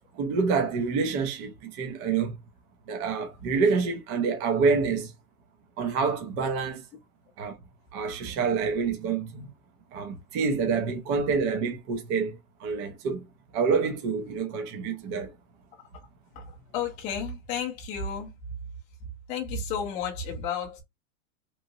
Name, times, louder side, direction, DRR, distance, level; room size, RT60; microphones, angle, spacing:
voice 1, 0.1-2.4 2.9-5.1 5.8-6.8 7.4-7.6 7.9-9.5 9.9-13.3 13.5-15.3, right 5 dB, 30° right, 0.6 m, -27 dB
voice 2, 16.7-18.3 19.3-20.8, left 6 dB, 20° left, 0.5 m, -32 dB
3.0 x 2.5 x 2.6 m
supercardioid pair, 155°, 42 cm